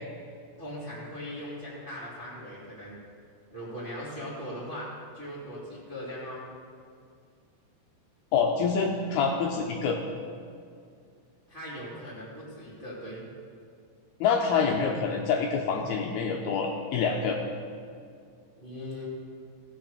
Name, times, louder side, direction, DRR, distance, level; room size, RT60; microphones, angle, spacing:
voice 1, 0.6-3.0 3.5-6.4 11.5-13.2 18.5-19.0, equal, 20° right, -8 dB, 1.5 m, -39 dB
voice 2, 8.3-10.0 14.2-17.4, left 5 dB, 80° left, 1 dB, 2.3 m, -26 dB
17.0 x 6.3 x 5.0 m, 2.3 s
omnidirectional pair, 5.0 m